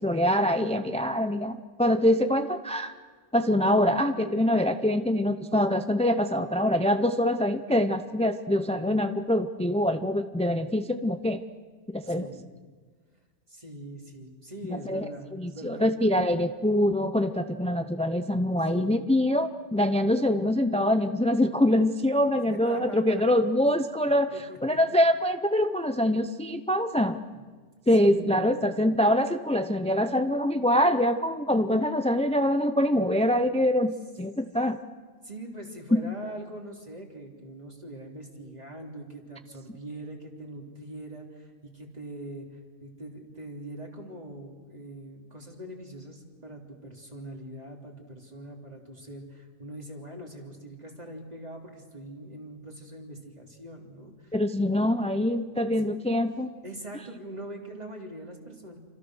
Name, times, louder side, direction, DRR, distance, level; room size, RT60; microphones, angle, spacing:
voice 1, 0.0-2.9 3.3-11.4 11.9-12.3 14.7-27.2 27.9-34.8 35.9-36.0 54.3-56.5, left 1 dB, 10° left, 9 dB, 0.4 m, -24 dB
voice 2, 12.0-12.4 13.5-15.9 18.7-19.2 22.5-23.4 24.3-24.8 27.3-27.4 28.0-28.9 35.2-42.5 42.8-54.4 55.8-56.0 56.6-58.8, right 1 dB, 30° right, 0 dB, 3.6 m, -42 dB
29.0 x 26.0 x 6.4 m, 1.5 s
omnidirectional pair, 1.4 m